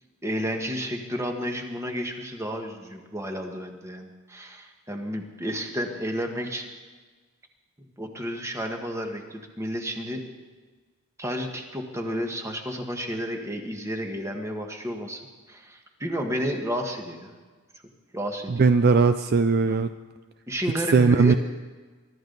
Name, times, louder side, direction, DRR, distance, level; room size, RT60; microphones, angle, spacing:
voice 1, 0.2-6.6 8.0-10.2 11.2-15.2 15.5-17.3 18.1-18.5 19.7-19.9 20.5-21.4, equal, 15° right, 3 dB, 1.5 m, -31 dB
voice 2, 18.5-19.9 20.9-21.3, right 4 dB, 45° right, 10 dB, 0.4 m, -19 dB
23.5 x 13.0 x 4.0 m, 1.4 s
head